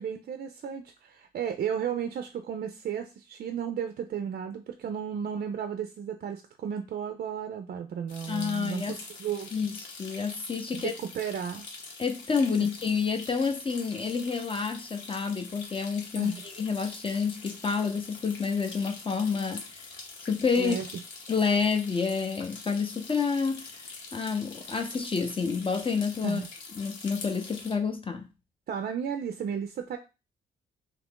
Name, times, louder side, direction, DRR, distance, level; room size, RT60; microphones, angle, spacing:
voice 1, 0.0-9.5 10.8-11.7 16.2-16.4 20.6-20.9 26.2-26.5 28.7-30.0, right 8 dB, 50° right, 0.4 m, -34 dB
sound 1, 8.1-27.7, left 4 dB, 70° left, 0.9 m, -44 dB
voice 2, 8.3-9.0 9.5-10.9 12.0-19.8 20.2-20.8 21.3-23.7 24.1-26.4 26.8-28.3, left 5 dB, 25° left, 0.6 m, -29 dB
2.9 x 2.5 x 3.5 m
cardioid pair, 90°, 20 cm